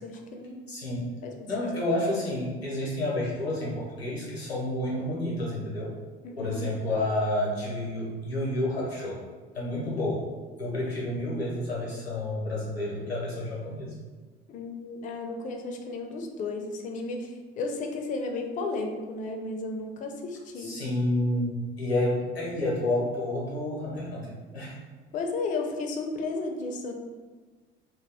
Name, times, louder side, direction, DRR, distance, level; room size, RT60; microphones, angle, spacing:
voice 1, 0.0-0.7 1.2-1.5 6.2-6.7 14.5-20.8 25.1-26.9, left 3 dB, 25° left, 3 dB, 0.4 m, -34 dB
voice 2, 0.7-1.1 1.5-5.9 6.4-9.2 9.5-10.3 10.6-13.9 20.6-24.7, left 1 dB, 85° left, -5 dB, 0.7 m, -30 dB
2.3 x 2.2 x 3.3 m, 1.4 s
figure-of-eight pair, 60°, 30 cm